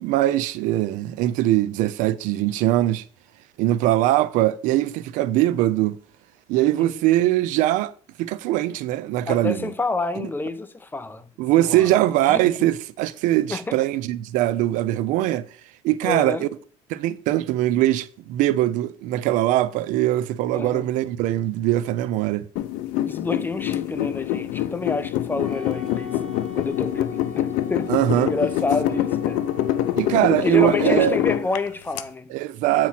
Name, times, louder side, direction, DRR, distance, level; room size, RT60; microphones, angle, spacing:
voice 1, 0.0-3.0 3.6-6.0 6.5-7.9 8.2-9.7 10.2-10.3 11.4-15.5 15.8-16.5 16.9-22.4 27.9-28.3 30.0-31.2 32.3-32.9, right 14 dB, 80° right, 0.4 m, -21 dB
voice 2, 9.3-11.2 11.5-11.9 12.2-12.5 13.5-13.8 16.0-16.5 20.5-20.9 23.0-26.2 26.5-29.4 30.4-32.3, left 3 dB, 15° left, 0.6 m, -29 dB
sound 1, 22.6-32.0, left 13 dB, 85° left, 0.5 m, -25 dB
Wind instrument woodwind instrument, 25.4-30.3, left 3 dB, 15° right, 2.1 m, -39 dB
8.2 x 3.0 x 5.6 m
cardioid pair, 105°, 13 cm